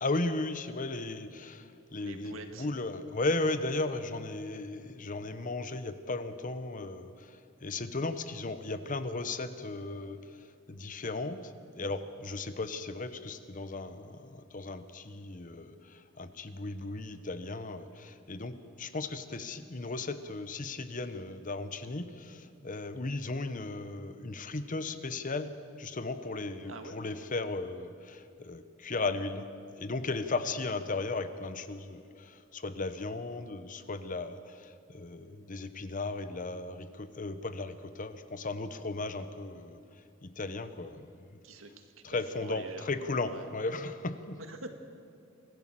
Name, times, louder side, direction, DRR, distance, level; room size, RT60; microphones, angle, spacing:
voice 1, 0.0-7.3 7.6-10.2 10.7-11.4 11.8-29.5 29.8-39.8 40.2-41.1 42.0-44.4, left 3 dB, 40° left, 11 dB, 1.0 m, -36 dB
voice 2, 2.0-2.7 26.7-27.0 41.4-43.5 44.4-44.8, right 3 dB, 85° right, 6 dB, 1.9 m, -46 dB
24.5 x 15.5 x 7.6 m, 2.5 s
head